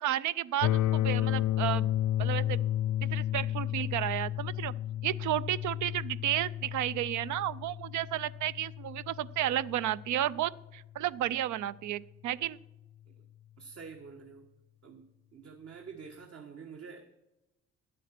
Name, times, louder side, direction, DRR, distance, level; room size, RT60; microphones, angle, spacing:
voice 1, 0.0-1.9 2.2-2.6 3.0-4.7 5.0-12.6, right 12 dB, 75° right, 17 dB, 0.5 m, -32 dB
sound 1, 0.6-10.5, left 12 dB, 75° left, 0.6 m, -32 dB
voice 2, 13.6-14.5 14.8-17.1, right 5 dB, 50° right, 4 dB, 1.3 m, -47 dB
10.0 x 8.4 x 5.9 m, 0.98 s
cardioid pair, 90°, 30 cm